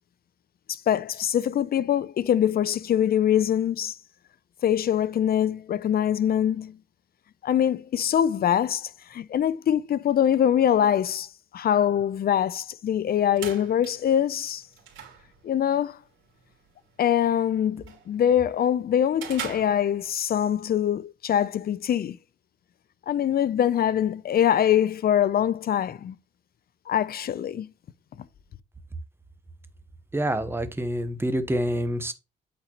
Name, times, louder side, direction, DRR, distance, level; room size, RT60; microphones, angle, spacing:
voice 1, 0.7-4.0 4.6-6.8 7.4-11.3 11.5-14.6 15.4-16.0 17.0-22.2 23.1-26.2 26.9-27.7, left 10 dB, 50° left, 0.6 m, -23 dB
sound 1, 13.0-20.4, right 8 dB, 80° right, 2.6 m, -44 dB
voice 2, 30.1-32.1, equal, 10° right, 1.0 m, -27 dB
8.5 x 4.3 x 3.0 m
cardioid pair, 90°, 20 cm